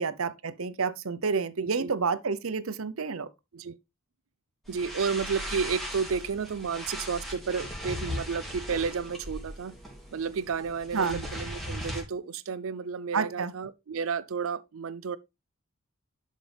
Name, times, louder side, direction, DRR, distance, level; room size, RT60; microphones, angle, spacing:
voice 1, 0.0-3.3 10.9-11.2 13.1-13.5, right 5 dB, 90° right, 0.8 m, -29 dB
sound 1, 4.6-12.0, equal, ahead, 2.8 m, -38 dB
voice 2, 4.7-9.7 10.1-15.2, right 5 dB, 75° right, 0.5 m, -32 dB
11.0 x 5.3 x 3.4 m
head